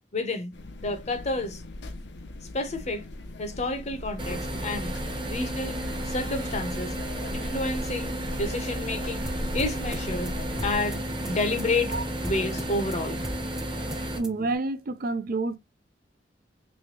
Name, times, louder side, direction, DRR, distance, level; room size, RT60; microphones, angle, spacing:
voice 1, 0.1-0.5 0.8-1.6 2.5-3.0 3.4-5.0 5.3-6.9 7.3-9.3 9.5-10.3 10.6-11.9 12.2-13.2, left 2 dB, 40° left, 0.8 m, -30 dB
sound 1, 0.5-10.8, left 1 dB, 70° left, 0.7 m, -38 dB
sound 2, 4.2-14.2, right 1 dB, 25° right, 1.0 m, -33 dB
sound 3, 9.2-14.6, equal, 5° right, 0.6 m, -38 dB
voice 2, 14.2-15.6, right 3 dB, 55° right, 0.5 m, -28 dB
3.2 x 3.2 x 2.9 m
head